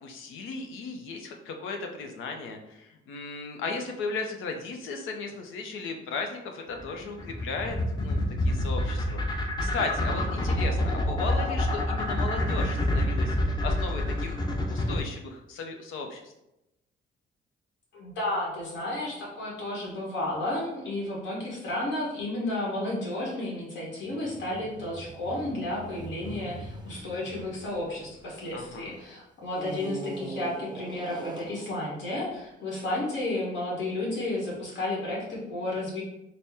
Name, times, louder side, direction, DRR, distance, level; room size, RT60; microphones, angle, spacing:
voice 1, 0.0-9.2 9.6-14.4 14.7-16.3 28.5-28.9, left 4 dB, 85° left, 4 dB, 0.6 m, -36 dB
sound 1, 6.8-15.0, left 1 dB, 20° left, 0.6 m, -27 dB
voice 2, 17.9-36.0, left 1 dB, 65° left, -5 dB, 1.4 m, -32 dB
sound 2, 24.1-28.7 29.5-32.9, right 2 dB, 20° right, 0.5 m, -42 dB
4.1 x 2.1 x 3.5 m, 0.88 s
cardioid pair, 90°, 20 cm